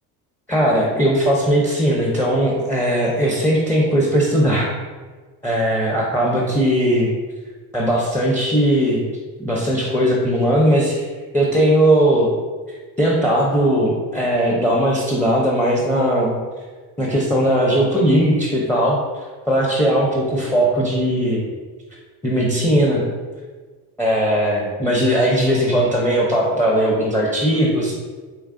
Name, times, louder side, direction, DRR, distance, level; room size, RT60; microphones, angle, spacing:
voice 1, 0.5-4.7 5.4-7.1 7.7-9.1 9.4-11.0 11.3-12.3 13.0-16.3 17.0-19.0 19.5-21.4 22.2-23.0 24.0-27.9, equal, 5° left, -3 dB, 0.5 m, -18 dB
4.4 x 3.1 x 2.5 m, 1.4 s
cardioid pair, 110°, 35 cm